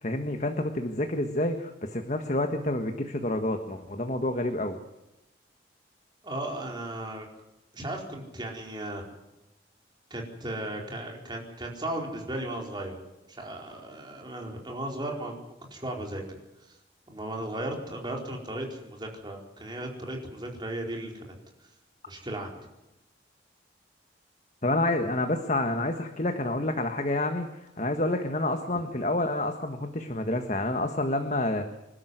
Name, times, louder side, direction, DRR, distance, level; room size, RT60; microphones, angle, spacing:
voice 1, 0.0-4.8 24.6-31.7, left 1 dB, 40° left, 6 dB, 1.6 m, -28 dB
voice 2, 6.2-7.3 7.7-9.1 10.1-13.0 13.3-15.3 15.7-16.2 16.6-16.8 17.1-21.4 21.6-21.7 22.1-22.6, right 1 dB, 25° right, 1 dB, 4.5 m, -36 dB
26.5 x 12.5 x 9.5 m, 0.94 s
head